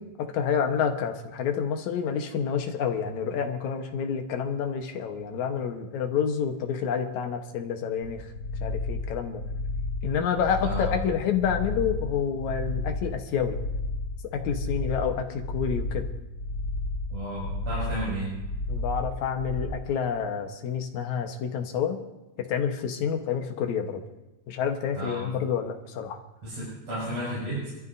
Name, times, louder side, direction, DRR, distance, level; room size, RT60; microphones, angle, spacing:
voice 1, 0.0-8.3 8.6-9.4 10.0-13.6 14.3-16.1 18.7-22.0 22.4-24.0 24.5-26.2, left 7 dB, 80° left, 4 dB, 2.6 m, -28 dB
sound 1, 8.0-19.7, left 2 dB, 45° left, 3.7 m, -32 dB
voice 2, 17.1-18.3 24.9-25.2 26.4-27.7, right 1 dB, 60° right, -8 dB, 7.3 m, -32 dB
25.5 x 14.0 x 2.7 m, 1.0 s
omnidirectional pair, 3.3 m